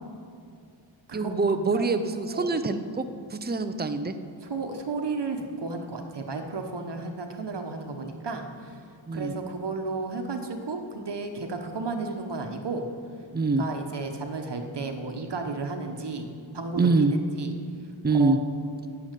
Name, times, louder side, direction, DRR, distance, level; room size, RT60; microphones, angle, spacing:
voice 1, 1.1-4.2 9.1-9.3 13.3-13.7 16.7-17.1 18.0-18.4, right 3 dB, 20° right, 9 dB, 0.6 m, -25 dB
voice 2, 4.4-8.8 9.1-12.9 13.6-17.1 17.4-17.5 18.2-18.3, right 3 dB, 55° right, 4 dB, 1.2 m, -33 dB
11.5 x 7.1 x 9.1 m, 2.4 s
wide cardioid pair, 110°, 48 cm